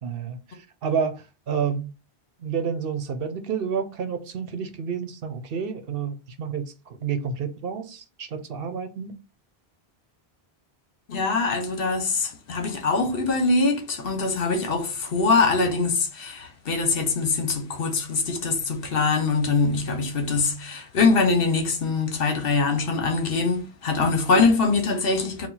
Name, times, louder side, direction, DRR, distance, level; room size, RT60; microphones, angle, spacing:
voice 1, 0.0-1.9 2.4-9.1, right 6 dB, 65° right, 0.9 m, -30 dB
voice 2, 11.1-25.5, left 4 dB, 65° left, 1.1 m, -23 dB
4.4 x 2.3 x 4.0 m
omnidirectional pair, 1.1 m